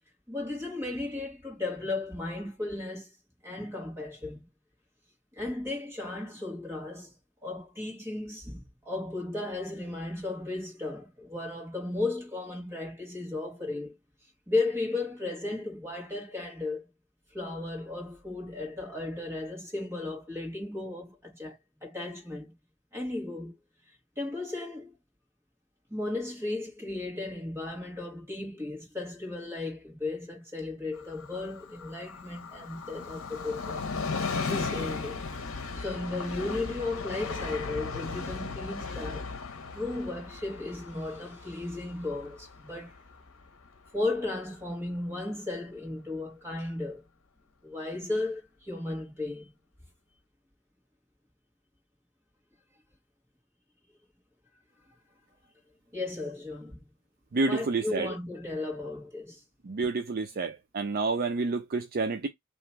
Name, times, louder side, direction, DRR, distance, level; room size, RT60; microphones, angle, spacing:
voice 1, 0.3-3.1 3.4-4.4 5.4-7.1 7.4-14.0 14.5-16.8 17.3-22.5 22.9-23.6 24.2-25.0 25.9-33.9 34.3-35.3 35.8-39.3 39.7-42.9 43.9-47.0 47.6-49.5 55.9-56.9 57.5-59.4, left 2 dB, 10° right, 1.8 m, -35 dB
Train, 30.9-44.3 44.6-44.7, left 4 dB, 65° left, 0.9 m, -37 dB
voice 2, 57.3-58.1 59.6-62.3, right 3 dB, 45° right, 0.5 m, -29 dB
3.0 x 3.0 x 4.4 m
head